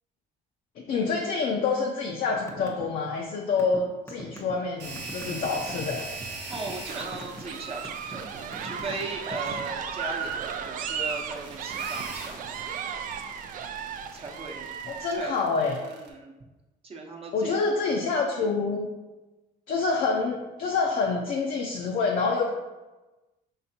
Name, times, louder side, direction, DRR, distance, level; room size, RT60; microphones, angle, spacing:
voice 1, 0.8-6.1 14.9-15.8 17.3-18.9 19.7-22.5, left 4 dB, 55° left, 0 dB, 0.6 m, -27 dB
sound 1, 2.3-2.9 3.1-5.7 6.2-6.7 7.0-7.4 7.8-8.1 8.5-9.8, equal, 15° left, 0.8 m, -41 dB
sound 2, 4.8-16.1, right 3 dB, 80° right, 1.0 m, -41 dB
voice 2, 6.5-12.7 14.1-14.7 15.1-15.3 15.8-16.3 16.8-17.5, right 3 dB, 35° right, -1 dB, 0.9 m, -38 dB
sound 3, 6.8-15.3, right 7 dB, 50° right, 0.4 m, -35 dB
5.5 x 3.3 x 2.8 m, 1.1 s
cardioid pair, 110°, 17 cm